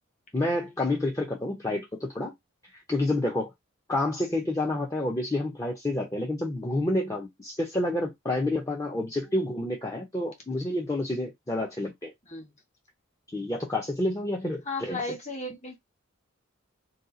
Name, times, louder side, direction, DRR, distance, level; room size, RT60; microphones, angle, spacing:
voice 1, 0.3-2.3 2.7-3.5 3.9-12.1 13.3-15.0, left 1 dB, 15° left, 0.5 m, -29 dB
voice 2, 14.6-15.8, left 2 dB, 35° left, 1.2 m, -35 dB
2.7 x 2.3 x 3.7 m
head